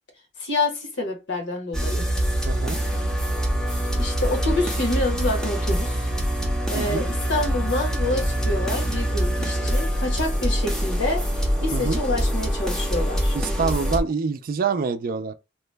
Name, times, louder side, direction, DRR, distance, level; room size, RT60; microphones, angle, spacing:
voice 1, 0.4-2.0 4.0-6.1 6.7-13.3, left 2 dB, 70° left, 1.2 m, -27 dB
sound 1, 1.7-14.0, equal, 5° left, 0.6 m, -24 dB
voice 2, 2.4-2.8 6.8-7.1 11.7-12.0 13.3-15.3, right 5 dB, 50° right, 0.4 m, -26 dB
2.9 x 2.1 x 3.3 m
head